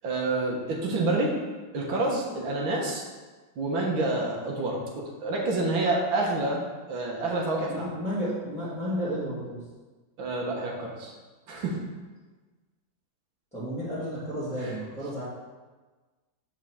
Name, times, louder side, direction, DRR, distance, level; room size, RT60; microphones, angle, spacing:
voice 1, 0.0-1.3 1.7-3.0 3.6-6.6 6.9-7.9 10.2-11.1 11.5-11.8 14.6-14.8, right 2 dB, 85° right, -1 dB, 2.1 m, -28 dB
voice 2, 7.7-9.6 13.5-15.2, equal, 5° left, -11 dB, 2.5 m, -32 dB
8.3 x 4.8 x 6.4 m, 1.3 s
omnidirectional pair, 2.1 m